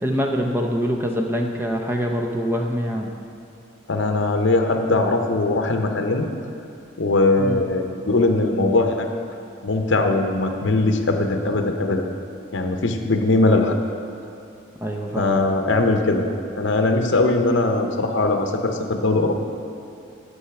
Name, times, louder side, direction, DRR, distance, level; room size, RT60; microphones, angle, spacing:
voice 1, 0.0-3.1 7.4-7.6 14.8-15.3, equal, 10° right, 1 dB, 0.5 m, -24 dB
voice 2, 3.9-6.3 7.0-9.1 9.6-12.0 12.5-13.8 15.2-16.3 16.6-19.3, left 2 dB, 65° left, 5 dB, 0.7 m, -20 dB
11.5 x 5.5 x 5.8 m, 2.6 s
head